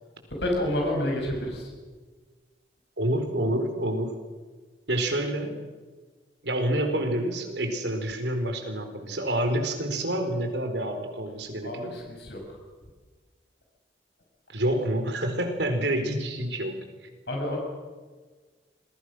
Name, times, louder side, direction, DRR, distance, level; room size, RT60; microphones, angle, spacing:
voice 1, 0.4-1.7 11.6-12.4 17.3-17.6, left 1 dB, 65° left, 0 dB, 7.0 m, -29 dB
voice 2, 3.0-4.2 4.9-5.6 6.4-11.9 14.5-16.8, right 1 dB, 75° right, 6 dB, 4.5 m, -28 dB
28.5 x 21.5 x 6.4 m, 1.4 s
head